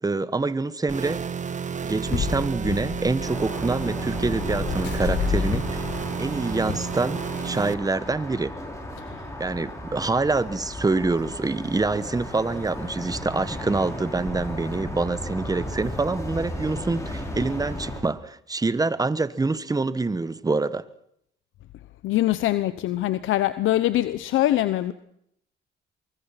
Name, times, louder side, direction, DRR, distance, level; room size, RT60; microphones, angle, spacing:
voice 1, 0.0-1.2 1.8-5.8 6.2-8.6 9.4-20.8, right 3 dB, 20° right, 1.3 m, -26 dB
sound 1, 0.9-7.7, right 6 dB, 40° right, 1.3 m, -32 dB
sound 2, 1.9-6.7, left 6 dB, 60° left, 5.7 m, -30 dB
sound 3, 3.2-18.0, left 1 dB, 15° left, 6.6 m, -35 dB
voice 2, 22.0-24.9, left 14 dB, 85° left, 1.0 m, -23 dB
24.0 x 23.0 x 5.9 m
cardioid pair, 90°, 20 cm